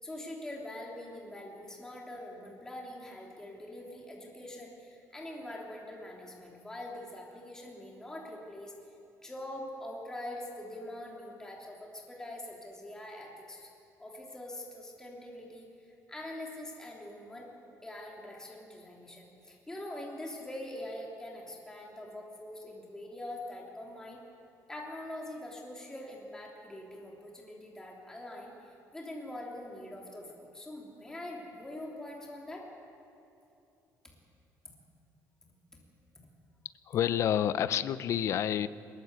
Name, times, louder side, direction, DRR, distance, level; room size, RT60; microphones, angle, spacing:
voice 1, 0.0-8.7 9.2-13.7 14.0-15.7 16.1-17.5 17.8-24.2 24.7-32.7, left 1 dB, 10° left, -2 dB, 3.1 m, -44 dB
voice 2, 36.9-38.7, left 10 dB, 50° left, 15 dB, 0.7 m, -28 dB
22.0 x 21.0 x 8.1 m, 2.8 s
cardioid pair, 170°, 7 cm